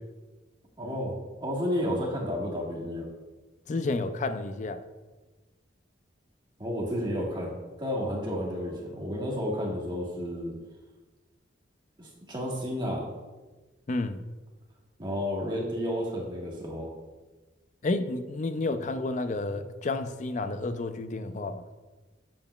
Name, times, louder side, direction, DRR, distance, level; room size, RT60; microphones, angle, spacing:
voice 1, 0.8-1.1 1.4-3.1 6.6-7.5 7.8-10.5 12.0-13.1 15.0-16.9, equal, 25° right, -3 dB, 1.5 m, -31 dB
voice 2, 3.7-4.8 13.9-14.2 17.8-21.6, left 2 dB, 40° left, 10 dB, 0.4 m, -30 dB
7.7 x 6.8 x 2.3 m, 1.2 s
head